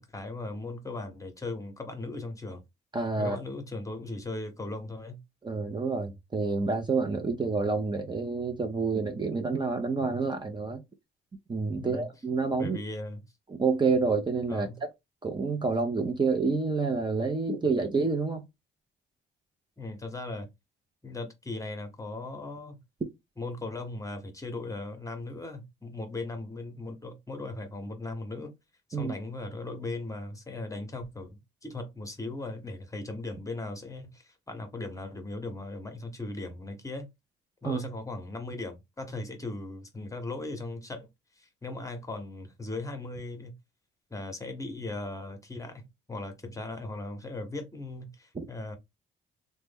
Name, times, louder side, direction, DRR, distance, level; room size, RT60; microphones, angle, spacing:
voice 1, 0.0-2.6 3.2-5.2 11.8-12.1 12.6-13.2 14.5-14.8 19.8-20.5 21.0-22.8 23.4-28.5 28.9-37.1 37.6-41.1 41.4-43.6 44.1-48.8, left 2 dB, 15° left, 0.9 m, -38 dB
voice 2, 2.9-3.4 5.4-10.8 11.5-12.8 13.5-14.7 15.2-18.4 28.9-29.1 37.6-37.8 48.3-48.5, right 4 dB, 25° right, 0.6 m, -28 dB
2.9 x 2.2 x 3.5 m
cardioid pair, 90°, 20 cm